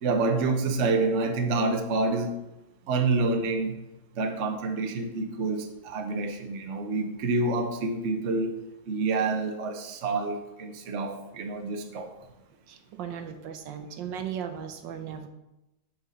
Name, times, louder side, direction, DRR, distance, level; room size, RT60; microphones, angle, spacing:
voice 1, 0.0-2.3 2.9-3.8 4.2-8.5 8.9-12.1, right 3 dB, 50° right, 5 dB, 1.0 m, -27 dB
voice 2, 12.7-15.3, right 8 dB, 75° right, 7 dB, 1.4 m, -37 dB
7.0 x 5.0 x 6.4 m, 0.93 s
omnidirectional pair, 2.0 m